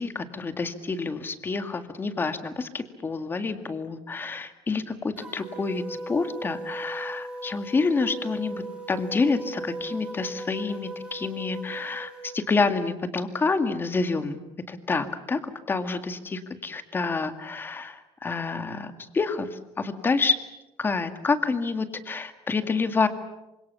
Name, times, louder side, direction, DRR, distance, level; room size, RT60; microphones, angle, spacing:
voice 1, 0.0-14.4 14.7-20.3 20.8-23.1, left 4 dB, 20° left, 9 dB, 2.0 m, -28 dB
sound 1, 5.2-12.3, right 2 dB, 10° right, 4.9 m, -38 dB
27.5 x 26.0 x 7.1 m, 0.93 s
cardioid pair, 165°, 11 cm